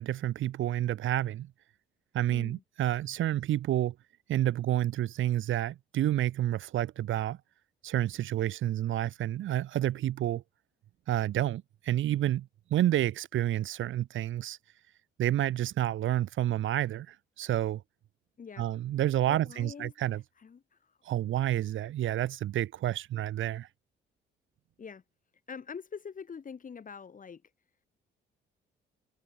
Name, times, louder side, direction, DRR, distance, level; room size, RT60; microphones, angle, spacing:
voice 1, 0.0-1.5 2.1-3.9 4.3-7.4 7.8-10.4 11.1-14.6 15.2-17.1 17.4-17.8 18.6-20.2 21.1-23.7, right 13 dB, 75° right, 2.9 m, -29 dB
voice 2, 2.3-2.6 18.4-18.7 19.3-21.0 24.8-25.0 25.5-27.4, left 6 dB, 40° left, 4.2 m, -45 dB
cardioid pair, 90°, 20 cm